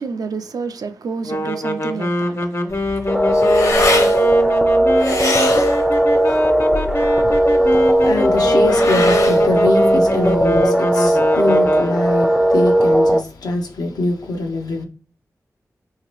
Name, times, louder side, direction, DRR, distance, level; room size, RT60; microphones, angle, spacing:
voice 1, 0.0-3.5, right 4 dB, 75° right, 0.4 m, -30 dB
sound 1, 1.2-12.2, left 1 dB, 45° left, 0.6 m, -24 dB
sound 2, 2.7-10.6, left 2 dB, 65° left, 0.9 m, -25 dB
sound 3, 3.1-13.2, right 1 dB, 5° right, 0.4 m, -16 dB
voice 2, 7.7-14.8, left 2 dB, 90° left, 0.7 m, -23 dB
3.2 x 2.8 x 3.0 m
cardioid pair, 50°, 6 cm